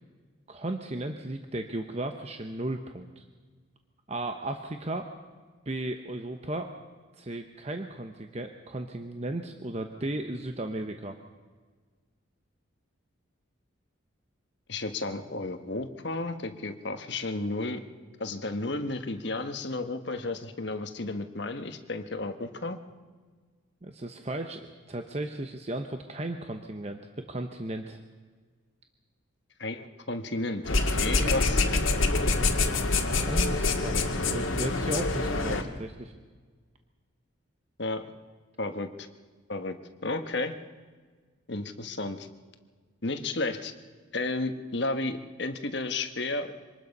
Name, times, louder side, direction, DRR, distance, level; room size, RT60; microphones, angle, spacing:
voice 1, 0.5-3.2 4.1-5.1 5.7-6.7 7.2-11.2 23.8-28.0 30.9-31.3 33.1-36.1, right 1 dB, 30° right, 6 dB, 0.9 m, -35 dB
voice 2, 14.7-17.8 18.2-22.8 29.6-31.6 35.5-35.7 37.8-38.0 38.6-39.1 39.5-39.8 40.0-40.5 41.5-42.3 43.0-43.7 44.1-46.5, left 2 dB, 55° left, 7 dB, 1.3 m, -32 dB
sound 1, 30.6-35.6, left 3 dB, 75° left, 1.8 m, -26 dB
25.0 x 19.5 x 5.4 m, 1.5 s
head